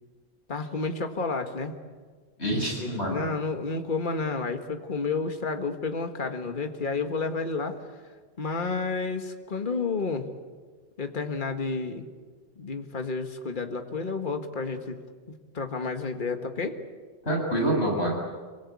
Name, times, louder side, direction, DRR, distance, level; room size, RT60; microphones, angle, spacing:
voice 1, 0.5-1.7 2.8-7.8 8.4-10.3 11.0-12.1 12.6-15.0 15.3-16.8, left 4 dB, 50° left, 6 dB, 1.8 m, -31 dB
voice 2, 2.4-3.3 17.2-18.2, right 1 dB, 75° left, -1 dB, 7.9 m, -26 dB
26.5 x 24.0 x 8.5 m, 1.5 s
omnidirectional pair, 1.1 m